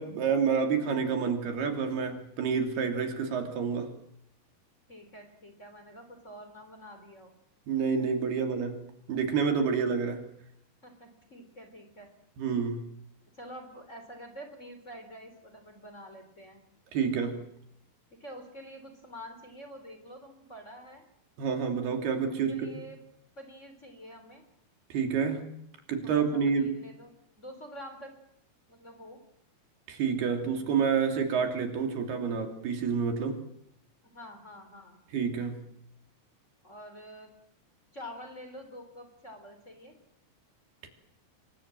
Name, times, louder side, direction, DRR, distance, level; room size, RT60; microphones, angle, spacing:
voice 1, 0.0-3.9 7.7-10.2 12.4-12.8 16.9-17.4 21.4-22.8 24.9-25.5 25.9-26.8 29.9-33.4 35.1-35.7 40.8-40.9, right 6 dB, 85° right, 4 dB, 4.9 m, -29 dB
voice 2, 4.9-7.3 10.8-12.1 13.3-16.6 18.1-21.0 22.3-23.0 23.3-24.4 26.0-28.1 28.7-29.2 34.0-35.0 36.6-37.3 37.9-40.0, equal, 20° left, 6 dB, 3.4 m, -47 dB
27.5 x 23.0 x 7.6 m, 0.76 s
omnidirectional pair, 4.4 m